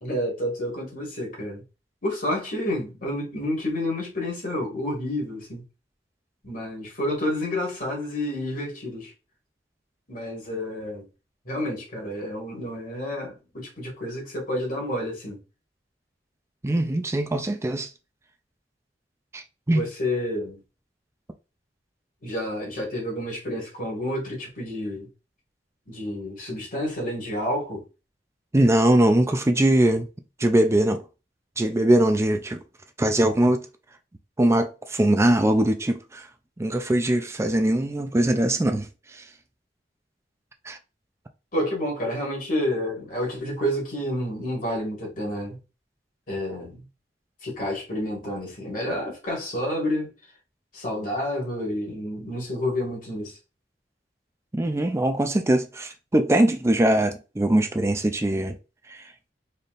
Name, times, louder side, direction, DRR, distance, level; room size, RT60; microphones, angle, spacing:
voice 1, 0.0-1.6 2.0-5.6 6.4-9.1 10.1-11.1 11.5-15.4 19.7-20.6 22.2-25.1 25.9-27.8 41.5-45.6 46.3-46.8 47.4-50.1 50.7-53.4, left 1 dB, 50° left, 2.1 m, -29 dB
voice 2, 16.6-17.9 19.3-19.8 28.5-30.1 30.4-31.0 31.6-32.6 33.0-33.6 34.4-36.3 36.6-39.2 40.7-40.8 54.5-58.6 58.9-59.0, right 1 dB, 15° right, 0.4 m, -21 dB
4.2 x 3.4 x 2.5 m
head